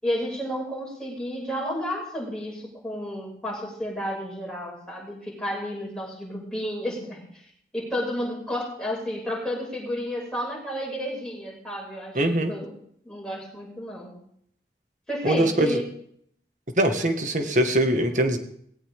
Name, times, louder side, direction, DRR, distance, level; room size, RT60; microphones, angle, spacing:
voice 1, 0.0-7.2 7.7-12.8 13.0-14.1 15.1-15.8, equal, 5° left, -3 dB, 6.7 m, -31 dB
voice 2, 12.1-12.5 15.2-15.8 16.8-18.4, right 1 dB, 45° right, 5 dB, 2.0 m, -22 dB
18.5 x 17.0 x 3.8 m, 0.67 s
head